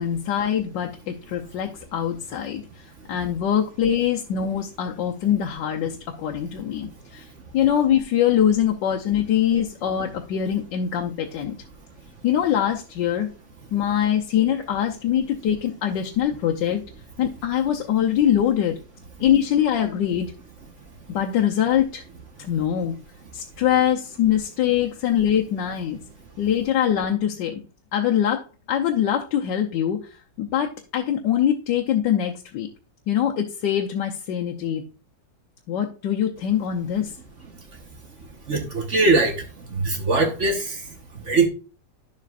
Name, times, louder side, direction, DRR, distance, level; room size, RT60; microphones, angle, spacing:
voice 1, 0.0-2.6 3.1-7.3 7.5-11.5 12.2-13.3 13.7-16.8 17.2-18.8 19.2-20.3 21.1-22.0 22.4-23.0 23.3-26.0 26.4-27.5 27.9-28.4 28.7-32.7 33.1-34.8 35.7-37.1, left 10 dB, 85° left, 1 dB, 1.5 m, -23 dB
voice 2, 38.2-41.5, right 3 dB, 45° right, 4 dB, 1.5 m, -23 dB
10.5 x 7.4 x 2.5 m, 0.34 s
omnidirectional pair, 1.9 m